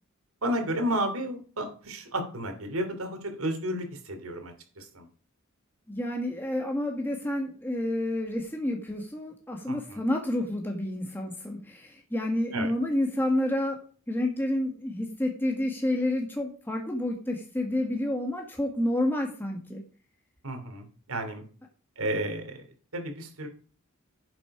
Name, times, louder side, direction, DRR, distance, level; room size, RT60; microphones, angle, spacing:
voice 1, 0.4-5.1 9.7-10.0 12.5-12.7 20.4-21.4 22.0-22.6 22.9-23.5, right 1 dB, 90° right, 5 dB, 3.1 m, -32 dB
voice 2, 5.9-13.8 14.1-19.8, left 1 dB, 10° left, 1 dB, 1.6 m, -29 dB
10.5 x 7.8 x 4.9 m, 0.39 s
head